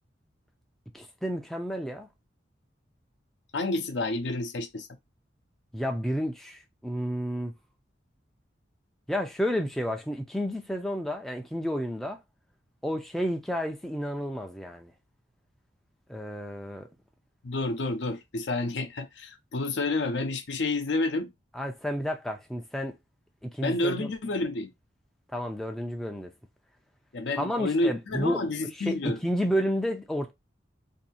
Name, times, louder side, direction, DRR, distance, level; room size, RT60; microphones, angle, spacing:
voice 1, 0.9-2.1 5.7-7.5 9.1-12.2 12.8-14.9 16.1-16.9 21.5-22.9 23.4-24.1 25.3-26.3 27.4-28.5 28.8-30.3, equal, ahead, 0.4 m, -31 dB
voice 2, 3.5-4.9 17.4-21.3 23.6-24.7 27.1-29.2, left 2 dB, 70° left, 0.6 m, -29 dB
2.7 x 2.7 x 4.1 m
head